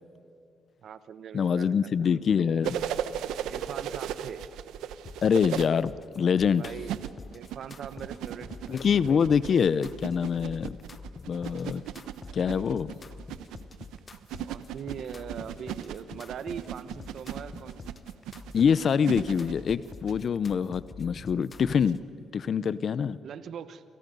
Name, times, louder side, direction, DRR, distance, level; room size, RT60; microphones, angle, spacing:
voice 1, 0.8-1.7 3.5-4.4 6.6-7.0 7.3-8.8 14.5-17.9 23.2-23.8, right 7 dB, 65° right, 12 dB, 1.2 m, -41 dB
voice 2, 1.3-2.8 5.2-6.6 8.7-10.8 11.3-11.8 12.3-12.9 18.5-22.0 22.3-23.2, left 7 dB, 55° left, 17 dB, 0.7 m, -25 dB
sound 1, 2.6-5.6 6.8-20.2 21.9-22.0, right 10 dB, 90° right, 0.9 m, -36 dB
sound 2, 5.1-22.0, left 4 dB, 35° left, 1.1 m, -46 dB
28.0 x 27.0 x 5.5 m, 2.4 s
cardioid pair, 90°, 0 cm